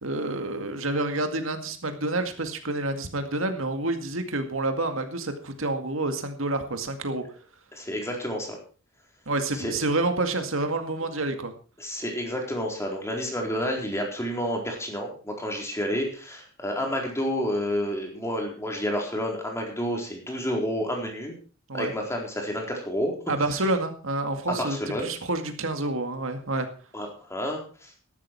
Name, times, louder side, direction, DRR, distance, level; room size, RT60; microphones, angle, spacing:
voice 1, 0.0-7.2 9.3-11.5 21.7-21.9 23.3-24.8 25.0-26.7, right 2 dB, 85° right, 6 dB, 2.1 m, -28 dB
voice 2, 7.7-8.6 9.5-9.7 11.8-21.4 21.7-23.1 24.5-25.1 26.9-27.9, equal, 15° left, 1 dB, 4.1 m, -30 dB
14.0 x 12.0 x 4.7 m, 0.39 s
head